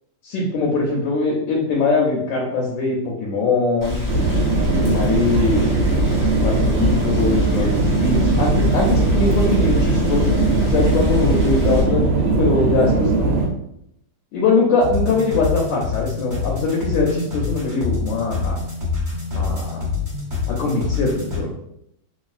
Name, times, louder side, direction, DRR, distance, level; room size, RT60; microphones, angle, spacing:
voice 1, 0.2-4.0 4.6-5.7 6.3-13.4 14.3-18.6 19.3-19.8 20.5-21.5, left 3 dB, 75° left, -2 dB, 1.2 m, -22 dB
Rain, 3.8-11.8, left 2 dB, 15° left, 0.6 m, -25 dB
sound 1, 4.1-13.5, right 3 dB, 75° right, 1.2 m, -19 dB
sound 2, 14.8-21.4, left 4 dB, 25° right, 1.2 m, -26 dB
3.1 x 2.4 x 2.4 m, 0.77 s
omnidirectional pair, 2.2 m